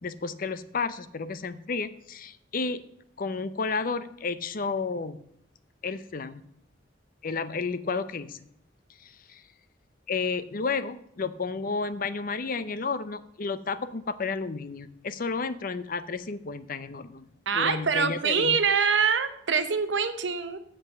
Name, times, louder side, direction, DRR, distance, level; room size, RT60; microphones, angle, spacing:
voice 1, 0.0-2.8 3.2-5.2 5.8-6.4 7.2-8.5 9.0-9.4 10.1-17.3 17.5-18.6, left 4 dB, 50° left, 13 dB, 0.6 m, -32 dB
voice 2, 17.5-20.6, right 6 dB, 75° right, 9 dB, 1.0 m, -25 dB
8.0 x 7.7 x 7.2 m, 0.73 s
head